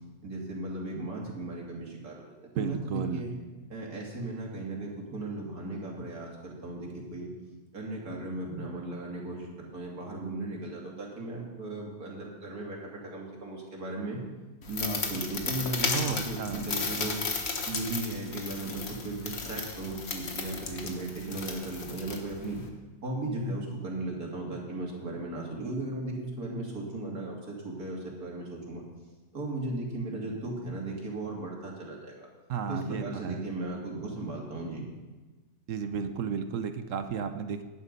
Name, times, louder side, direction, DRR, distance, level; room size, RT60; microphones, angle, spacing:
voice 1, 0.2-3.3 3.7-7.3 7.7-14.2 14.7-17.2 17.7-22.6 23.0-28.8 29.3-32.3 32.7-34.8, right 2 dB, 80° right, -2 dB, 3.1 m, -36 dB
voice 2, 2.5-3.2 15.9-16.7 32.5-33.4 35.7-37.6, right 7 dB, 65° right, 9 dB, 1.1 m, -33 dB
sound 1, 14.6-22.7, left 4 dB, 45° left, 1.4 m, -35 dB
11.5 x 9.9 x 5.3 m, 1.3 s
omnidirectional pair, 1.6 m